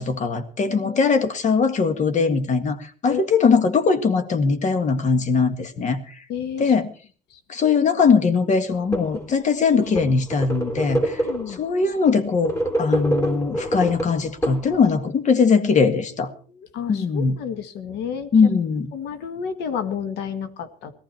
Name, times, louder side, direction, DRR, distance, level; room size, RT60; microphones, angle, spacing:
voice 1, 0.0-6.0 6.6-6.9 7.5-11.2 11.5-16.3 16.9-17.4 18.3-18.9, left 5 dB, 45° left, 10 dB, 1.8 m, -20 dB
voice 2, 0.7-1.1 3.1-3.2 6.3-6.7 7.3-7.4 11.2-11.6 15.8-15.9 16.7-18.3 18.9-20.9, left 7 dB, 85° left, 11 dB, 1.7 m, -31 dB
sound 1, 8.7-9.3 9.7-11.6 12.3-15.0, right 1 dB, 15° left, 3.5 m, -26 dB
18.0 x 14.0 x 4.4 m, 0.41 s
cardioid pair, 110°, 17 cm